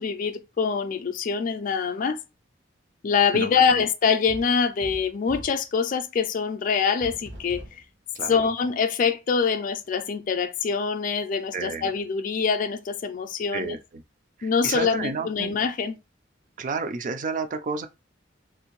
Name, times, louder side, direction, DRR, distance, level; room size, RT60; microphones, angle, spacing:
voice 1, 0.0-2.2 3.0-7.6 8.3-13.8 14.4-16.0, left 6 dB, 45° left, 0.4 m, -24 dB
voice 2, 3.3-3.8 8.2-8.4 11.5-11.9 13.5-13.8 14.4-15.5 16.6-17.9, right 4 dB, 45° right, 0.4 m, -31 dB
sound 1, 4.3-5.6 7.0-7.9, equal, 70° right, 1.2 m, -41 dB
3.6 x 2.5 x 2.9 m
head